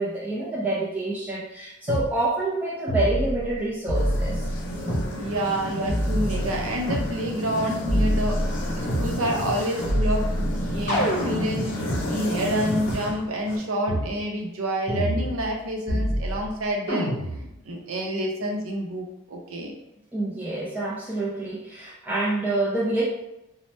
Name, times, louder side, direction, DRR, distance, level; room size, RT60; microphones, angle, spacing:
voice 1, 0.0-4.5 20.1-23.0, right 2 dB, 5° right, -8 dB, 0.4 m, -27 dB
sound 1, 1.9-2.1 2.9-3.5 3.9-5.1 5.9-7.1 7.9-9.1 9.9-12.0 12.9-13.0 13.9-14.1 14.9-15.6 15.9-16.5 16.9-17.5, equal, 35° left, 0.8 m, -26 dB
sound 2, 3.9-13.6, equal, 55° left, 0.5 m, -32 dB
voice 2, 5.1-19.7, equal, 65° right, 1 dB, 0.6 m, -28 dB
2.8 x 2.0 x 3.1 m, 0.91 s
head